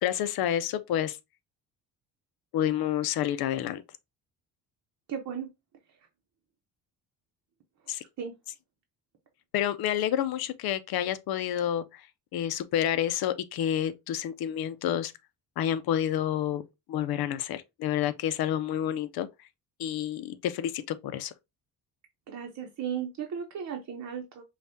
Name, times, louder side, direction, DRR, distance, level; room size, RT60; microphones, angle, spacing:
voice 1, 0.0-1.2 2.5-3.8 7.9-8.0 9.5-12.0 12.3-15.1 15.6-16.6 16.9-19.3 19.8-21.3, left 10 dB, 70° left, 0.6 m, -29 dB
voice 2, 5.1-5.5 5.9-6.0 7.8-8.3 22.3-24.4, right 8 dB, 45° right, 0.8 m, -36 dB
5.2 x 2.4 x 2.6 m
cardioid pair, 120°, 39 cm